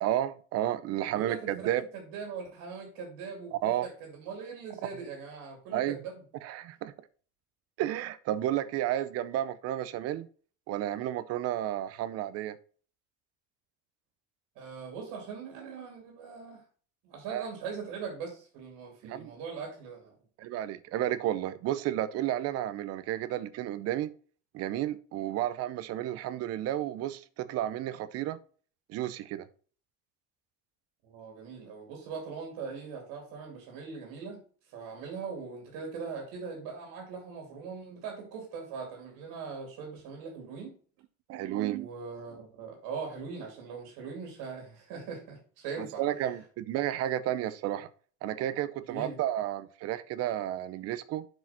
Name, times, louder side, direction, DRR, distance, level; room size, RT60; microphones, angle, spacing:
voice 1, 0.0-1.8 3.5-3.9 5.7-6.0 6.4-6.9 7.8-10.3 10.7-12.6 17.3-17.5 19.0-19.3 20.4-24.1 24.5-28.4 28.9-29.5 41.3-41.9 45.8-47.9 48.2-51.3, right 12 dB, 50° right, 0.6 m, -32 dB
voice 2, 1.1-6.2 14.6-16.6 17.0-20.1 31.0-34.4 34.7-40.7 41.8-46.0 48.9-49.2, right 5 dB, 85° right, 2.6 m, -41 dB
7.8 x 4.8 x 4.3 m
cardioid pair, 180°, 32 cm